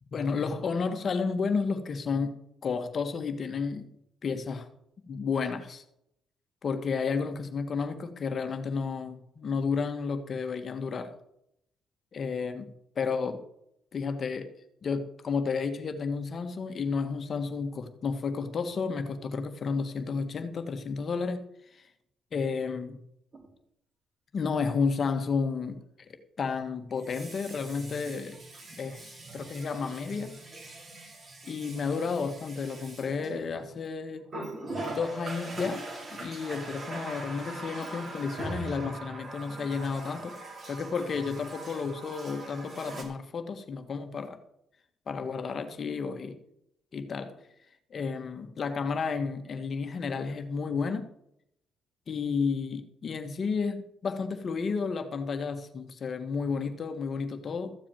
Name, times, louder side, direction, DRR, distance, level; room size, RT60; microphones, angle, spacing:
voice 1, 0.1-2.4 2.6-3.9 4.2-4.7 5.1-5.8 6.6-11.2 12.1-12.7 12.9-13.4 13.9-14.5 14.8-21.4 21.7-21.9 22.3-23.0 24.3-28.4 28.8-30.3 31.4-34.3 34.8-44.4 45.1-46.4 46.9-47.3 47.9-51.1 52.1-57.8, left 5 dB, 50° left, 1.6 m, -32 dB
Water tap faucet, 23.3-23.5 26.9-33.7 34.3-43.0, right 2 dB, 35° right, 3.8 m, -41 dB
14.5 x 4.9 x 9.0 m
cardioid pair, 90°, 0 cm